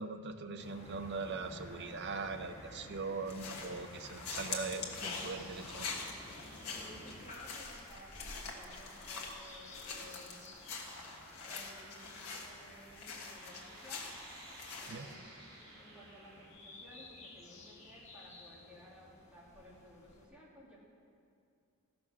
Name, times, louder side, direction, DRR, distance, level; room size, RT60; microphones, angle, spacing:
voice 1, 0.0-5.9 14.9-15.1, right 4 dB, 50° right, 8 dB, 0.6 m, -41 dB
sound 1, 0.6-20.3, left 1 dB, 30° left, 1.3 m, -54 dB
sound 2, 0.8-16.5, right 1 dB, 85° right, 3.4 m, -58 dB
sound 3, 3.3-15.1, left 4 dB, 80° left, 1.5 m, -45 dB
voice 2, 6.7-10.5 11.4-14.1 14.8-20.8, equal, 5° right, -6 dB, 2.1 m, -57 dB
14.5 x 6.1 x 6.1 m, 2.4 s
head